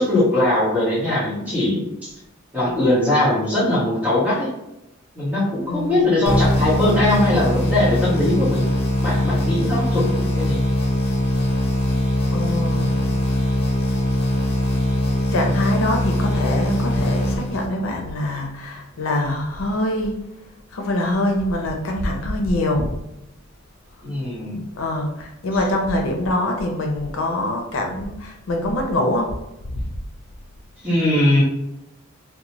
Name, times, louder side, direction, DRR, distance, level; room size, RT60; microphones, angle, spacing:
voice 1, 0.0-2.1 2.5-4.5 5.1-8.6 9.0-10.6 24.0-24.6 30.8-31.4, left 1 dB, 5° right, -9 dB, 1.2 m, -20 dB
voice 2, 5.7-6.1 12.3-13.5 15.3-20.2 20.7-22.9 24.0-24.1 24.8-29.4 29.6-29.9, left 1 dB, 80° left, 2 dB, 0.5 m, -24 dB
sound 1, 6.3-18.0, left 1 dB, 50° left, 0.8 m, -21 dB
2.9 x 2.2 x 2.8 m, 0.90 s
head